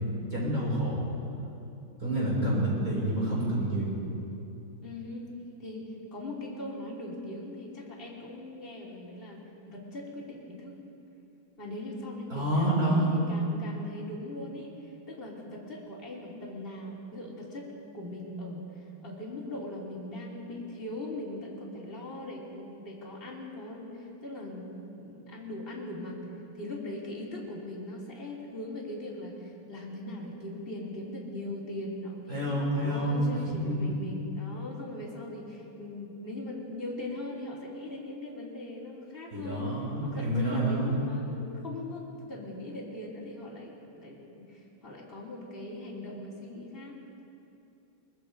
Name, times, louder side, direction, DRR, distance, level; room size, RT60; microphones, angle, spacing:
voice 1, 0.3-1.1 2.0-3.9 12.3-13.1 32.3-33.9 39.3-41.0, right 1 dB, 40° right, -5 dB, 7.1 m, -28 dB
voice 2, 4.8-5.2 5.6-10.8 11.6-26.2 26.5-32.4 32.7-39.8 40.0-42.0 42.3-47.2, left 1 dB, 25° left, -4 dB, 3.4 m, -40 dB
23.5 x 23.0 x 5.3 m, 2.8 s
omnidirectional pair, 2.2 m